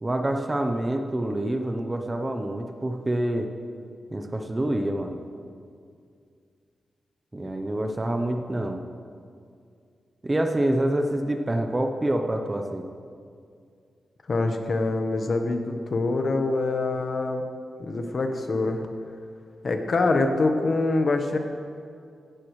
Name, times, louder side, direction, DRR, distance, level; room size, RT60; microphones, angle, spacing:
voice 1, 0.0-3.5 4.1-5.2 7.3-8.8 10.2-12.9, right 1 dB, 20° right, 4 dB, 0.8 m, -26 dB
voice 2, 14.3-17.4 17.8-18.8 19.6-21.4, left 3 dB, 45° left, 5 dB, 1.2 m, -25 dB
17.0 x 14.5 x 3.2 m, 2.3 s
wide cardioid pair, 145°, 0 cm